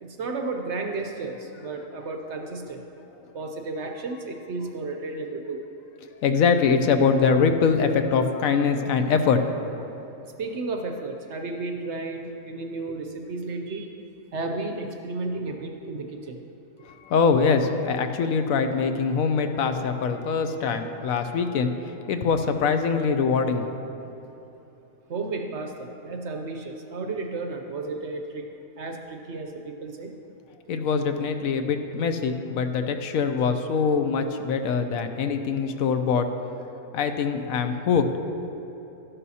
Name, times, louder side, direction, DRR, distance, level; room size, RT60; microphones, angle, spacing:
voice 1, 0.0-2.8 3.3-5.6 9.8-10.0 10.4-14.0 14.3-16.4 25.1-28.5 28.8-30.1, right 3 dB, 60° right, 4 dB, 0.8 m, -33 dB
voice 2, 6.2-9.4 16.8-23.7 30.7-36.3 36.9-38.1, left 5 dB, 75° left, 7 dB, 1.0 m, -23 dB
12.5 x 11.0 x 2.8 m, 3.0 s
omnidirectional pair, 1.6 m